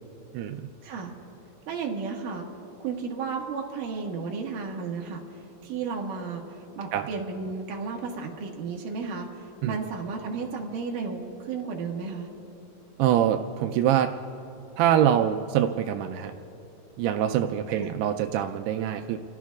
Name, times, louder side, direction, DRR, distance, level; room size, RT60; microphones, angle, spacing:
voice 1, 0.8-1.1 1.7-2.5 2.8-12.3 17.7-17.9, right 5 dB, 65° right, 0 dB, 2.4 m, -33 dB
voice 2, 13.0-14.1 14.8-16.3 17.0-19.2, right 10 dB, 85° right, 6 dB, 2.5 m, -24 dB
30.0 x 16.5 x 2.4 m, 3.0 s
omnidirectional pair, 4.7 m